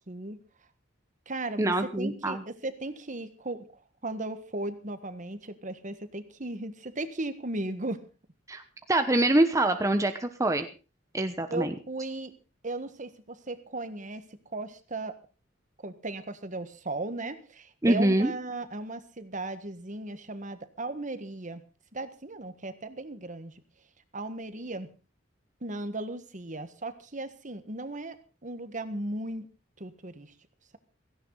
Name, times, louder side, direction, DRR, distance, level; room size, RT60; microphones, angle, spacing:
voice 1, 0.1-0.4 1.3-8.0 11.5-12.3 12.6-14.2 14.5-15.1 15.8-21.6 21.9-23.5 24.1-24.9 25.6-28.2 28.4-29.5 29.8-30.3, right 2 dB, 40° right, 11 dB, 1.6 m, -36 dB
voice 2, 1.6-2.4 8.5-8.6 8.9-10.7 11.1-11.7 17.8-18.3, right 1 dB, 15° right, 7 dB, 1.1 m, -24 dB
17.0 x 16.0 x 4.0 m, 0.34 s
head